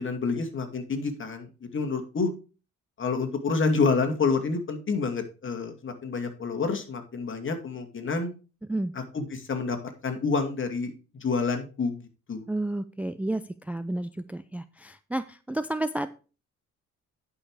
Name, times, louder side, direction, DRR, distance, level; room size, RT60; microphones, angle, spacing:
voice 1, 0.0-2.3 3.0-8.3 8.9-9.8 10.0-10.9 11.2-12.0 12.3-12.5, left 4 dB, 40° left, 5 dB, 2.4 m, -28 dB
voice 2, 12.5-16.1, right 1 dB, 5° right, 11 dB, 0.4 m, -31 dB
10.5 x 5.7 x 4.8 m, 0.34 s
cardioid pair, 90°, 30 cm